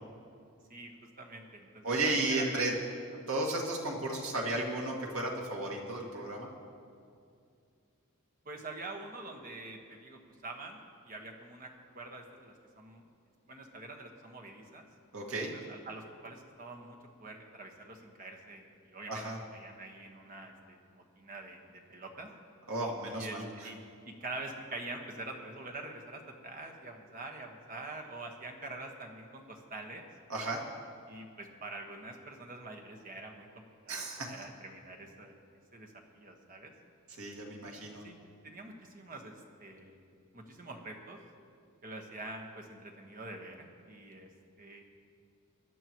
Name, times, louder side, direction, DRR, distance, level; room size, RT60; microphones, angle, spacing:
voice 1, 1.2-2.6 8.4-13.0 13.5-14.8 15.2-19.2 19.5-22.3 23.1-23.8 24.0-30.0 31.1-35.4 35.7-36.7 37.5-38.1 38.4-40.0 40.3-41.2 41.8-44.3 44.6-44.8, right 2 dB, 40° right, 2 dB, 1.4 m, -46 dB
voice 2, 1.8-2.7 3.3-6.5 15.1-15.5 19.1-19.4 22.7-23.7 30.3-30.6 33.9-34.3 37.2-38.1, right 2 dB, 75° right, -1 dB, 2.1 m, -34 dB
23.0 x 11.0 x 3.1 m, 2.4 s
head